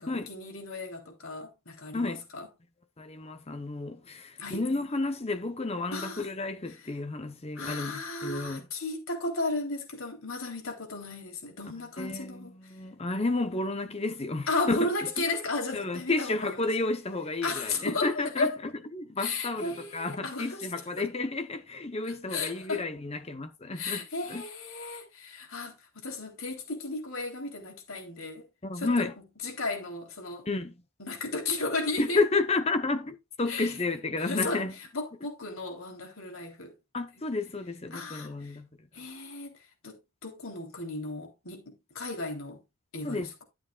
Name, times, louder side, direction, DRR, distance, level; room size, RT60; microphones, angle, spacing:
voice 1, 0.0-2.5 4.4-4.6 5.9-6.3 6.7-6.8 7.6-12.7 14.5-16.6 17.4-18.5 19.2-20.7 21.0-21.1 22.1-22.8 23.7-28.5 28.7-29.1 29.4-30.5 31.0-32.2 33.5-33.8 34.2-36.8 37.9-38.6 38.9-39.6 39.8-42.6 42.9-43.3, left 3 dB, 70° left, 3.6 m, -35 dB
voice 2, 3.0-8.6 12.0-14.9 15.7-18.5 18.9-24.0 24.3-24.4 28.6-29.1 30.5-30.7 32.0-34.7 36.9-38.7 43.0-43.3, left 3 dB, 30° left, 0.9 m, -31 dB
12.5 x 7.8 x 2.4 m
head